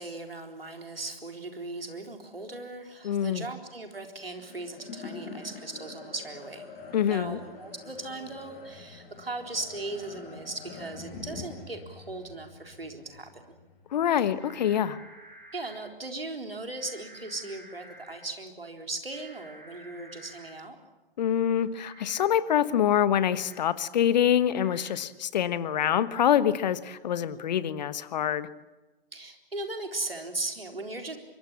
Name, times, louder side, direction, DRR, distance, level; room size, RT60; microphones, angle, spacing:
voice 1, 0.0-6.7 7.1-13.6 15.5-20.8 27.3-27.5 29.1-31.2, right 2 dB, 80° right, 4 dB, 4.0 m, -38 dB
voice 2, 3.0-3.5 6.9-7.4 13.9-15.0 21.2-28.5, left 9 dB, 50° left, 15 dB, 1.2 m, -25 dB
sound 1, 4.4-14.9, left 4 dB, 30° left, 6.5 m, -46 dB
sound 2, 14.4-15.7 16.7-18.1 19.1-20.5 21.8-22.2 23.2-23.5 24.5-24.9, right 1 dB, 35° right, 8.0 m, -51 dB
25.0 x 23.0 x 7.5 m, 1.1 s
figure-of-eight pair, 120°, 29 cm